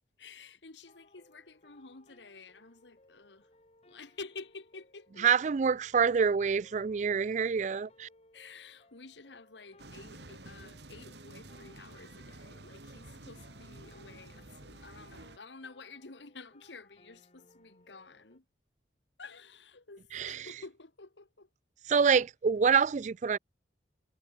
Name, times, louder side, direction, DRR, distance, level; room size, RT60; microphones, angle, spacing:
voice 1, 0.2-3.5 3.9-5.4 8.3-18.4 19.2-21.5, left 4 dB, 85° left, 1.7 m, -50 dB
sound 1, 0.9-18.4, left 2 dB, 35° left, 3.7 m, -64 dB
voice 2, 5.2-8.1 20.1-20.5 21.9-23.4, right 6 dB, 40° right, 0.3 m, -26 dB
sound 2, 9.8-15.4, right 2 dB, 75° right, 2.4 m, -50 dB
head